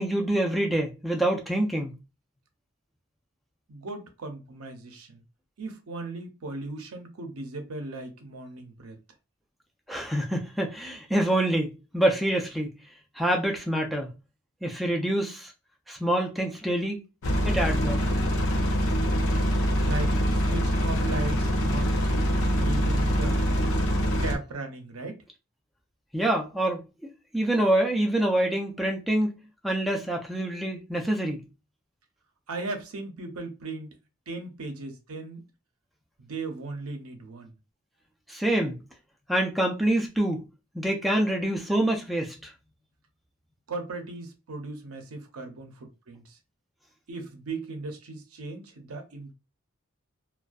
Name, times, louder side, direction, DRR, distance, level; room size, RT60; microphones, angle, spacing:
voice 1, 0.0-2.0 9.9-12.7 13.2-14.1 14.6-15.5 15.9-17.0 17.4-18.0 26.1-26.8 27.3-29.3 29.6-31.4 38.3-38.8 39.3-40.4 40.7-42.5, right 1 dB, ahead, 0.3 m, -26 dB
voice 2, 3.7-5.2 5.6-9.0 19.8-21.9 22.6-23.4 24.2-25.2 32.5-33.9 34.3-35.4 36.2-37.5 43.7-46.4 47.1-49.3, right 2 dB, 80° right, 0.6 m, -37 dB
sound 1, 17.2-24.4, equal, 65° left, 0.5 m, -24 dB
2.5 x 2.2 x 2.3 m
head